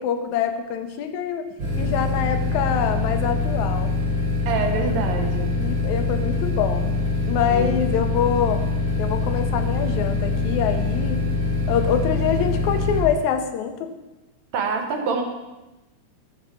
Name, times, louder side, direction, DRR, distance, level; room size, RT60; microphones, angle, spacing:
voice 1, 0.0-1.5 1.7-3.9 5.6-6.9 7.3-8.6 9.0-11.2 11.7-13.9, left 8 dB, 80° left, 7 dB, 2.0 m, -25 dB
sound 1, 1.6-13.0, left 3 dB, 45° right, 2.0 m, -24 dB
voice 2, 4.5-5.5 7.5-7.8 14.5-15.2, right 5 dB, 70° right, 3 dB, 2.1 m, -26 dB
13.0 x 5.4 x 4.3 m, 1.0 s
omnidirectional pair, 3.5 m